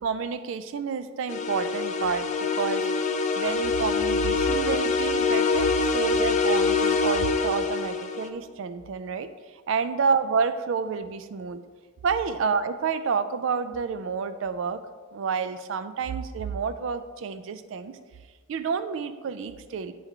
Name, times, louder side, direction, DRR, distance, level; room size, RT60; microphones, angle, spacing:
voice 1, 0.0-2.3 2.6-9.3 9.7-11.6 12.0-14.8 15.1-18.0 18.5-19.9, right 5 dB, 60° right, 11 dB, 0.3 m, -29 dB
sound 1, 1.3-8.3, left 4 dB, 35° left, 0.4 m, -25 dB
9.9 x 3.4 x 3.6 m, 1.4 s
head